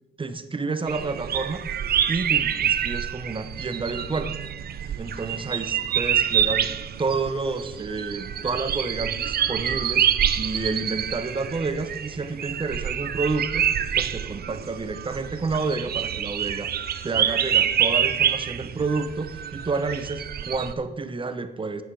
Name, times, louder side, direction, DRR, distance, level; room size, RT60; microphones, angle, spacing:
voice 1, 0.2-1.7 2.1-4.3 5.0-6.7 7.0-10.1 10.4-16.7 17.0-21.8, right 3 dB, 25° right, 10 dB, 0.9 m, -29 dB
sound 1, 0.9-20.7, right 9 dB, 50° right, 0.6 m, -26 dB
9.6 x 8.4 x 4.7 m, 1.0 s
cardioid pair, 90°, 20 cm